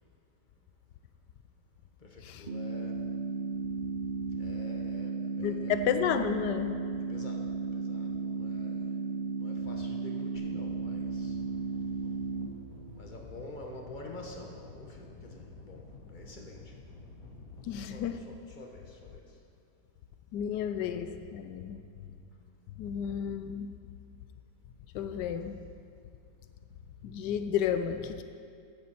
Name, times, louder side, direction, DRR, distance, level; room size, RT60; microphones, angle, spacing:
voice 1, 2.0-3.0 4.3-5.7 7.1-7.4 7.7-8.9 9.4-11.4 12.9-16.7 17.9-19.2, left 2 dB, 30° left, 1 dB, 1.3 m, -48 dB
sound 1, 2.5-12.5, right 4 dB, 75° right, 0.4 m, -34 dB
voice 2, 5.4-6.8 17.6-18.2 20.3-21.8 22.8-23.7 24.9-25.6 27.0-28.2, left 8 dB, 85° left, 9 dB, 1.2 m, -32 dB
sound 2, 10.4-18.0, left 2 dB, 55° left, 1.6 m, -50 dB
14.5 x 9.6 x 4.3 m, 2.3 s
omnidirectional pair, 1.8 m